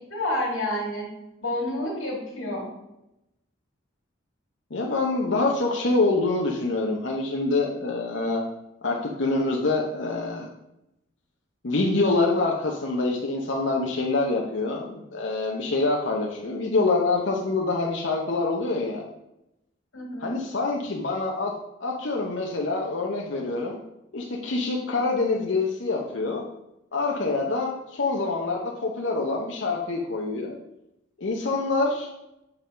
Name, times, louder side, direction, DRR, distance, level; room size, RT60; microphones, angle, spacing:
voice 1, 0.1-1.1 1.4-2.7 19.9-20.4, left 1 dB, 90° left, -3 dB, 2.7 m, -29 dB
voice 2, 4.7-8.4 8.8-10.5 11.6-19.0 20.2-21.5 21.8-23.8 24.1-26.4 26.9-30.6 31.2-32.1, left 3 dB, 70° left, -1 dB, 0.9 m, -26 dB
7.8 x 3.8 x 5.6 m, 0.89 s
head